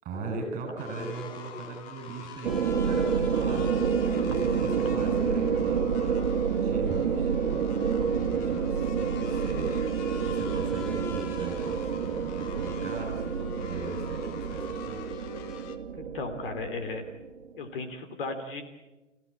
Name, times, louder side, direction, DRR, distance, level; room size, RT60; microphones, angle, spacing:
voice 1, 0.0-3.6 4.1-6.2 6.5-15.0, right 3 dB, 20° right, 4 dB, 7.1 m, -39 dB
sound 1, 0.8-15.8, left 7 dB, 25° left, 1.4 m, -44 dB
sound 2, 2.4-17.5, right 6 dB, 55° right, 2.1 m, -29 dB
voice 2, 16.0-17.1 17.6-18.6, left 3 dB, 50° left, 6 dB, 3.1 m, -35 dB
29.5 x 16.0 x 8.7 m, 1.1 s
hypercardioid pair, 135°, 36 cm